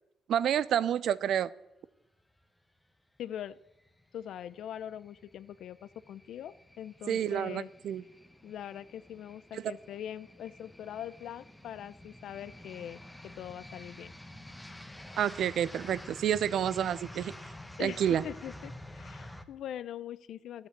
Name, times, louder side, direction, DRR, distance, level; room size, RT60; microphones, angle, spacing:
voice 1, 0.3-1.5 7.1-8.0 9.5-9.6 15.2-17.3 17.8-18.2, right 9 dB, 70° right, 18 dB, 0.5 m, -29 dB
voice 2, 3.2-3.6 4.1-7.7 8.4-14.1 17.8-20.7, left 10 dB, 75° left, 17 dB, 0.5 m, -42 dB
sound 1, 3.7-19.4, left 1 dB, 5° left, 1.0 m, -49 dB
11.5 x 8.4 x 8.5 m, 0.93 s
cardioid pair, 90°, 0 cm